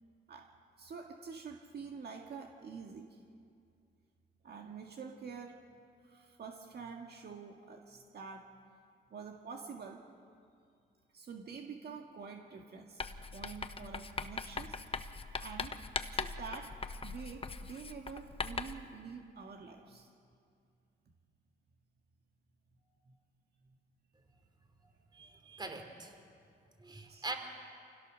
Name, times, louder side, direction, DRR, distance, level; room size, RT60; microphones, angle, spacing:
voice 1, 0.8-3.2 4.4-5.6 6.0-8.5 9.1-10.0 11.1-13.0 13.3-14.8 15.4-15.8 16.1-16.7 17.0-20.1 23.1-23.2 27.1-27.3, right 5 dB, 55° right, 1 dB, 1.9 m, -47 dB
Writing, 13.0-18.9, left 4 dB, 30° left, 1.0 m, -40 dB
voice 2, 25.1-26.1 26.8-27.3, right 2 dB, 20° right, 5 dB, 3.2 m, -42 dB
27.0 x 17.0 x 6.4 m, 2.3 s
cardioid pair, 90°, 20 cm